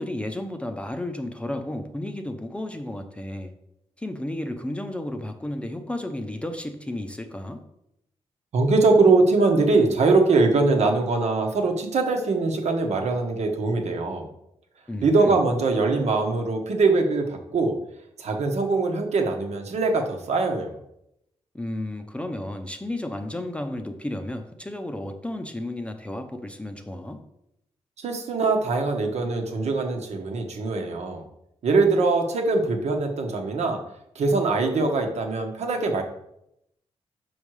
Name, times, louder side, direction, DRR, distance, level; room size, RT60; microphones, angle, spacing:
voice 1, 0.0-3.5 4.0-7.6 14.9-15.4 21.5-27.2, left 1 dB, 10° left, 6 dB, 0.6 m, -33 dB
voice 2, 8.5-14.2 15.0-17.7 18.2-20.7 28.0-31.2 31.6-33.8 34.1-36.0, right 3 dB, 75° right, 3 dB, 1.3 m, -22 dB
6.3 x 5.3 x 4.8 m, 0.79 s
wide cardioid pair, 115°, 11 cm